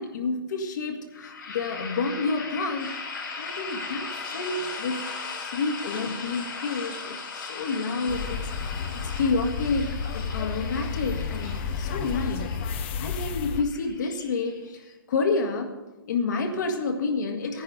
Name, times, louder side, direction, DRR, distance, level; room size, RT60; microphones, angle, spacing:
voice 1, 0.0-5.1 5.4-12.5 12.7-14.8 15.1-15.8 16.1-17.6, left 3 dB, 55° left, 3 dB, 1.8 m, -29 dB
sound 1, 1.1-14.9, left 4 dB, 80° left, 5.0 m, -38 dB
sound 2, 8.1-13.6, left 6 dB, 30° left, 0.6 m, -31 dB
15.5 x 10.5 x 3.9 m, 1.1 s
hypercardioid pair, 165°, 12 cm